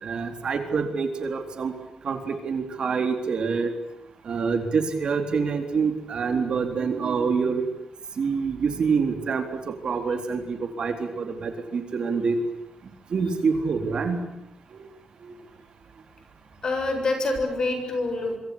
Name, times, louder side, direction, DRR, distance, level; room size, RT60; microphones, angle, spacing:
voice 1, 0.0-1.7 2.0-3.7 4.2-7.6 8.2-12.4 13.1-14.3 14.7-14.9 15.2-15.3, right 5 dB, 50° right, 7 dB, 3.9 m, -26 dB
voice 2, 16.6-18.4, left 2 dB, 35° left, 6 dB, 7.2 m, -26 dB
26.0 x 25.0 x 8.8 m, 0.78 s
wide cardioid pair, 165°, 2 cm